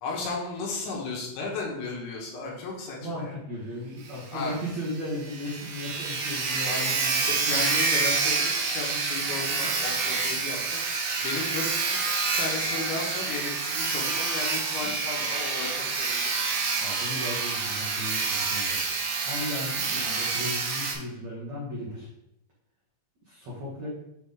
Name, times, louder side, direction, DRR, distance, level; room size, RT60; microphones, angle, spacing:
voice 1, 0.0-3.3 4.3-4.6 6.6-10.8 11.2-12.0 12.4-16.3, left 3 dB, 80° left, -2 dB, 3.6 m, -34 dB
voice 2, 3.0-7.5 16.8-22.1 23.2-23.9, left 1 dB, 70° right, -7 dB, 1.6 m, -36 dB
Sawing, 4.1-4.2 4.5-4.6 5.0-5.1 5.2-20.9, right 4 dB, 90° right, 1.9 m, -28 dB
8.1 x 4.0 x 3.5 m, 0.83 s
omnidirectional pair, 5.4 m